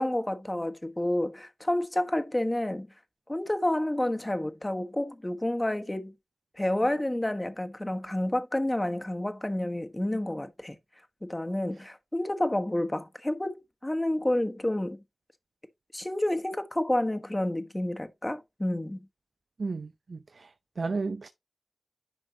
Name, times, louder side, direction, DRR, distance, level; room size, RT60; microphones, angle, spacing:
voice 1, 0.0-2.9 3.3-6.1 6.6-10.7 11.2-15.0 15.9-19.0, left 1 dB, 20° left, 1.2 m, -29 dB
voice 2, 19.6-20.5 20.8-21.3, right 4 dB, 75° right, 0.6 m, -33 dB
10.5 x 5.2 x 2.8 m
cardioid pair, 50°, 0 cm